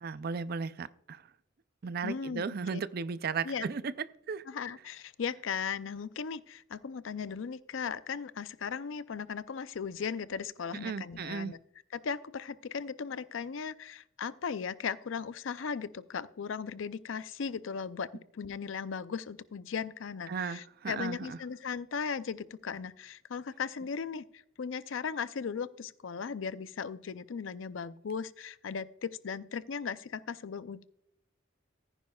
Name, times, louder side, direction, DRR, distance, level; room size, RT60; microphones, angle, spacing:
voice 1, 0.0-1.3 1.8-3.9 4.3-4.4 10.8-11.5 20.3-21.4, right 5 dB, 50° right, 0.5 m, -35 dB
voice 2, 2.0-2.8 3.4-3.7 4.5-11.6 11.9-30.8, left 6 dB, 85° left, 0.5 m, -37 dB
15.0 x 9.8 x 2.3 m
head